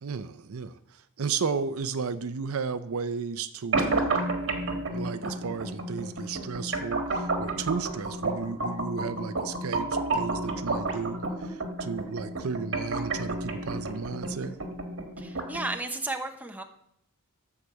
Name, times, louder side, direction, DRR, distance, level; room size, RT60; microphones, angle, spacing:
voice 1, 0.0-4.3 4.9-14.6, right 5 dB, 75° right, 13 dB, 0.6 m, -34 dB
sound 1, 3.7-15.7, right 2 dB, 60° right, 1.6 m, -31 dB
voice 2, 15.2-16.6, right 2 dB, 5° right, 5 dB, 0.9 m, -33 dB
13.0 x 4.8 x 6.7 m, 0.73 s
head